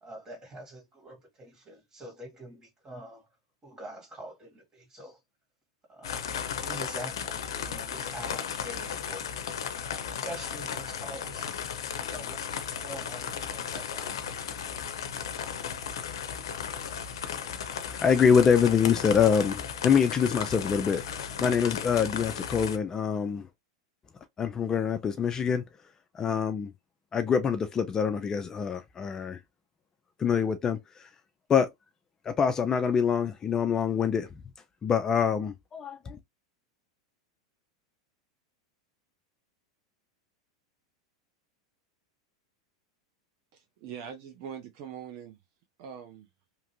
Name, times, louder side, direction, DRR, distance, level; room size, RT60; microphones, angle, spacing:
voice 1, 0.0-3.3 3.6-5.2 5.9-6.2 6.6-9.3 10.2-11.6 12.0-14.1, right 1 dB, 25° right, 1.8 m, -45 dB
sound 1, 6.0-22.8, left 7 dB, 80° left, 0.5 m, -35 dB
voice 2, 17.8-23.5 24.4-25.6 26.1-26.7 27.1-29.4 30.2-31.1 31.5-31.7 32.3-34.3 34.8-36.2, left 7 dB, 25° left, 0.4 m, -25 dB
voice 3, 43.5-45.4 45.8-46.3, right 8 dB, 55° right, 0.6 m, -42 dB
2.9 x 2.5 x 2.9 m
hypercardioid pair, 105°, 2 cm